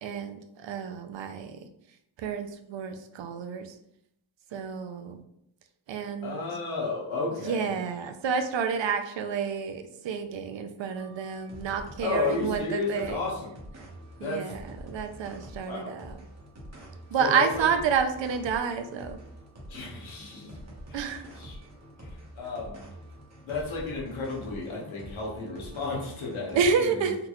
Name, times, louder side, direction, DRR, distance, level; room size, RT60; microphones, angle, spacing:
voice 1, 0.0-1.6 2.2-3.7 4.5-5.2 5.9-6.4 7.4-13.2 14.2-16.2 17.1-19.2 20.9-21.2 26.5-27.2, right 6 dB, 70° right, 7 dB, 0.5 m, -29 dB
voice 2, 6.2-7.7 12.0-13.5 14.2-14.5 15.6-16.0 17.2-17.7 19.7-20.6 20.9-21.5 22.0-22.9 23.4-27.1, left 3 dB, 85° left, -3 dB, 1.0 m, -33 dB
sound 1, 11.0-26.6, equal, 35° right, 1.0 m, -46 dB
3.7 x 2.3 x 3.0 m, 0.76 s
wide cardioid pair, 95°, 47 cm